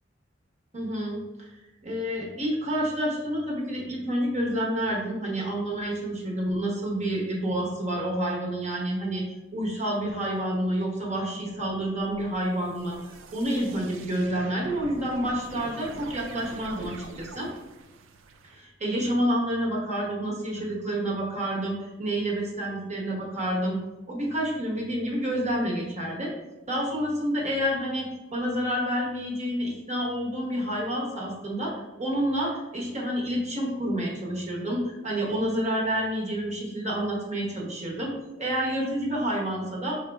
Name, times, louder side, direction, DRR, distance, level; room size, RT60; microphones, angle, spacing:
voice 1, 0.7-1.5 1.8-9.2 9.5-17.5 18.5-23.8 24.1-26.3 26.7-39.9, equal, 40° right, -3 dB, 1.1 m, -29 dB
sound 1, 11.5-18.6, right 3 dB, 90° right, 0.4 m, -45 dB
5.1 x 4.0 x 2.3 m, 1.1 s
head